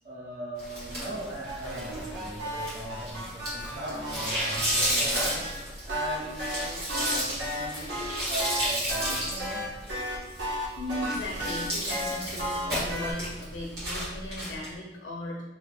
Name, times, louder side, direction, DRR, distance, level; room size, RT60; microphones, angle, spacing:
voice 1, 0.0-9.6, right 1 dB, 35° right, -7 dB, 0.5 m, -39 dB
sound 1, 0.6-14.7, equal, 55° right, 1.3 m, -33 dB
sound 2, 1.5-5.5 5.9-13.1, equal, 85° right, 1.0 m, -34 dB
voice 2, 10.8-15.4, left 1 dB, 80° left, -3 dB, 0.6 m, -37 dB
2.9 x 2.7 x 3.3 m, 1.0 s
head